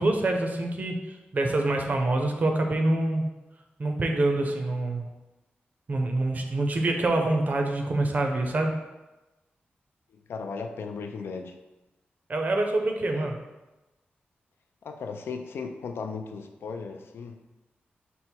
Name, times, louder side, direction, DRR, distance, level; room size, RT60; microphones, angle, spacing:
voice 1, 0.0-3.2 3.8-5.1 5.9-8.7 12.3-13.4, right 2 dB, 45° right, 3 dB, 0.5 m, -26 dB
voice 2, 10.1-11.6 13.1-13.3 14.8-17.4, left 5 dB, 80° left, 6 dB, 0.3 m, -36 dB
5.3 x 2.0 x 4.4 m, 1.1 s
wide cardioid pair, 125°, 4 cm